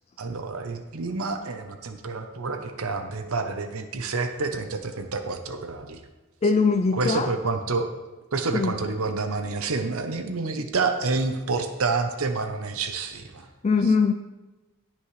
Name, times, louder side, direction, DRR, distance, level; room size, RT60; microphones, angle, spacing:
voice 1, 0.2-6.0 6.9-7.9 8.3-13.5 13.8-13.9, right 3 dB, 70° right, 7 dB, 0.8 m, -28 dB
voice 2, 6.4-7.3 8.5-8.8 13.6-14.1, left 4 dB, 30° left, 8 dB, 0.3 m, -21 dB
18.0 x 6.2 x 3.2 m, 1.1 s
head